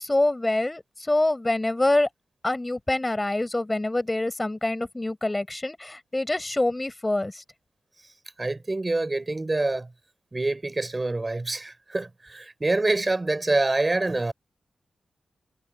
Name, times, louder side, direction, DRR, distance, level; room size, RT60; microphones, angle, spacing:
voice 1, 0.0-2.1 2.4-7.4, left 2 dB, 25° left, 6.0 m, -25 dB
voice 2, 8.4-9.9 10.3-14.3, right 2 dB, 30° right, 6.2 m, -26 dB
supercardioid pair, 40°, 0 cm